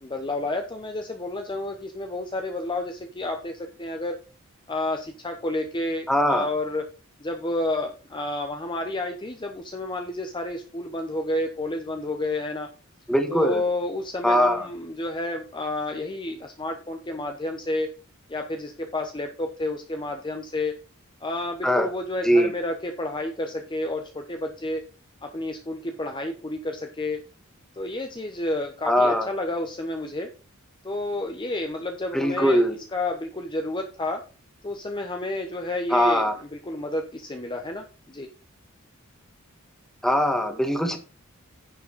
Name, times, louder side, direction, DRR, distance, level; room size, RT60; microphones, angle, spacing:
voice 1, 0.0-4.2 4.7-6.8 7.2-12.7 13.3-17.9 18.3-20.8 21.2-24.8 25.2-27.2 27.7-30.3 30.8-32.7 32.9-34.2 34.6-38.3, left 2 dB, 20° left, 4 dB, 0.9 m, -30 dB
voice 2, 6.1-6.5 13.1-13.6 14.2-14.7 21.6-21.9 22.2-22.5 28.8-29.3 32.1-32.7 35.9-36.3 40.0-41.0, equal, ahead, 5 dB, 1.6 m, -21 dB
10.0 x 7.2 x 4.1 m, 0.34 s
head